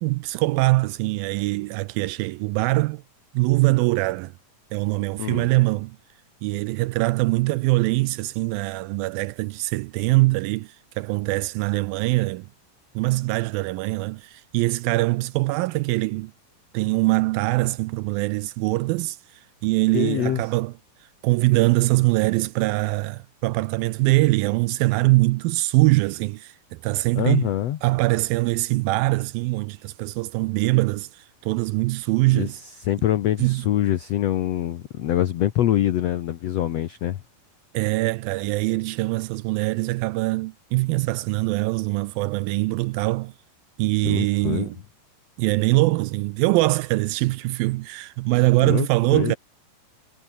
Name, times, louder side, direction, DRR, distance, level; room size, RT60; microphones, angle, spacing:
voice 1, 0.0-3.0 3.3-4.3 4.7-6.0 6.4-12.5 13.0-16.3 16.7-20.7 21.2-27.5 27.8-32.6 33.4-33.7 37.7-43.3 43.8-44.8 45.4-49.4, right 21 dB, 80° right, 2.1 m, -23 dB
voice 2, 19.9-20.4 27.1-27.8 32.3-32.5 32.8-37.2 44.0-44.7 48.6-49.4, left 12 dB, 85° left, 1.4 m, -24 dB
omnidirectional pair, 4.5 m